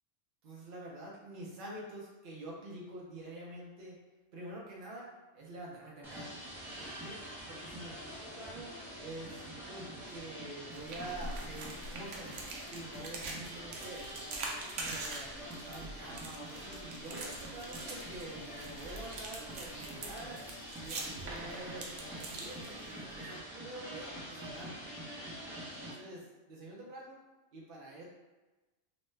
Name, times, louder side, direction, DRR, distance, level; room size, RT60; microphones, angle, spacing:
voice 1, 0.4-4.0 4.3-5.1 5.3-6.4 6.7-7.2 7.5-8.7 9.0-12.4 12.7-14.2 14.7-20.4 20.8-24.8 25.5-27.2 27.5-28.0, right 1 dB, 55° right, -4 dB, 0.7 m, -47 dB
sound 1, 6.0-25.9, right 1 dB, ahead, 0.5 m, -45 dB
sound 2, 10.7-23.2, right 2 dB, 80° right, 0.9 m, -44 dB
3.1 x 2.1 x 3.1 m, 1.2 s
omnidirectional pair, 1.2 m